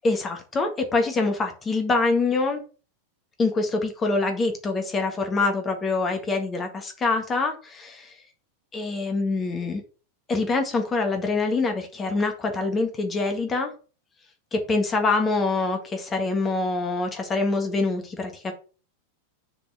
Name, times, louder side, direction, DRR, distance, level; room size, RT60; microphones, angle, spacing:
voice 1, 0.0-2.6 3.4-8.1 8.7-9.8 10.3-13.7 14.5-18.5, left 3 dB, 20° left, 5 dB, 1.7 m, -25 dB
6.9 x 4.4 x 5.9 m, 0.37 s
figure-of-eight pair, 90°, 0 cm